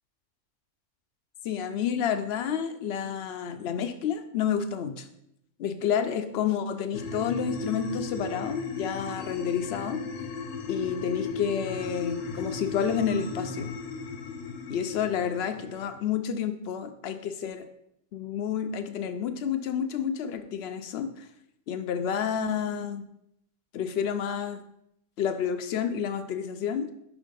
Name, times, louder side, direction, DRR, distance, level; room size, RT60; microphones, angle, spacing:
voice 1, 1.4-5.1 5.6-10.0 10.7-13.7 14.7-17.7 18.1-21.3 21.7-23.0 23.7-24.6 25.2-26.9, left 8 dB, 65° left, 8 dB, 0.6 m, -30 dB
sound 1, 6.9-15.9, left 4 dB, 85° left, 1.2 m, -36 dB
5.7 x 3.6 x 5.1 m, 0.78 s
omnidirectional pair, 1.5 m